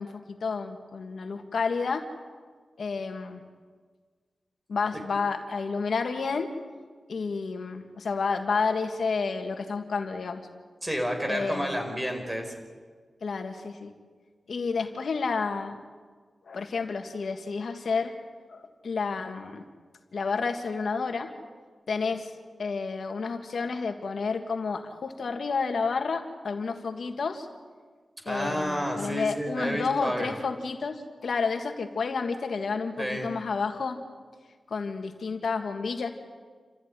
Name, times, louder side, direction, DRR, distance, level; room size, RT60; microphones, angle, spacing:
voice 1, 0.0-2.1 2.8-3.4 4.7-6.5 7.1-10.4 11.3-11.8 13.2-13.9 14.5-15.8 16.5-18.1 18.5-19.6 20.1-21.3 21.9-22.3 22.6-27.5 28.3-34.0 34.7-36.1, left 4 dB, 75° left, 5 dB, 1.8 m, -30 dB
voice 2, 10.8-12.5 28.2-30.4 33.0-33.3, equal, 15° right, 3 dB, 4.9 m, -30 dB
28.5 x 14.5 x 9.8 m, 1.5 s
wide cardioid pair, 110°, 0 cm